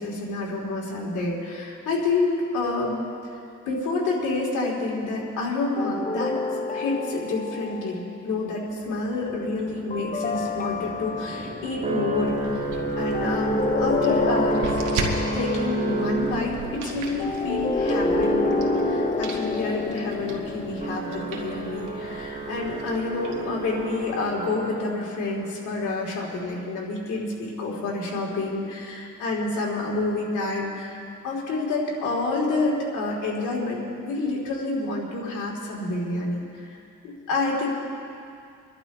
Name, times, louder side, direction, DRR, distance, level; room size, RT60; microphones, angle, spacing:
voice 1, 0.0-3.1 3.6-6.4 6.7-14.8 15.3-18.5 18.8-37.7, left 3 dB, 80° left, -3 dB, 3.4 m, -28 dB
sound 1, 5.8-8.2 9.9-11.7 13.1-15.9 17.2-21.7, left 4 dB, 25° left, 0.7 m, -28 dB
sound 2, 9.0-25.2, right 2 dB, 25° right, 2.0 m, -31 dB
sound 3, 12.1-24.3, right 3 dB, 85° right, 1.7 m, -38 dB
25.5 x 11.5 x 3.1 m, 2.5 s
cardioid pair, 90°, 30 cm